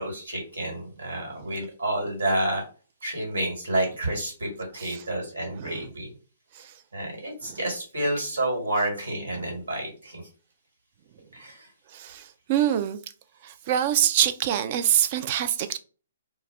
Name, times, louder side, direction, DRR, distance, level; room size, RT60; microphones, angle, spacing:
voice 1, 0.0-2.6 3.0-6.1 6.9-10.2 11.3-11.6, right 1 dB, 75° right, 1.4 m, -29 dB
voice 2, 1.3-1.7 4.8-5.1 5.5-5.9 6.5-6.7 7.4-7.6 11.9-13.0 13.4-15.8, right 10 dB, 40° right, 0.3 m, -26 dB
2.2 x 2.0 x 3.4 m
figure-of-eight pair, 125°, 0 cm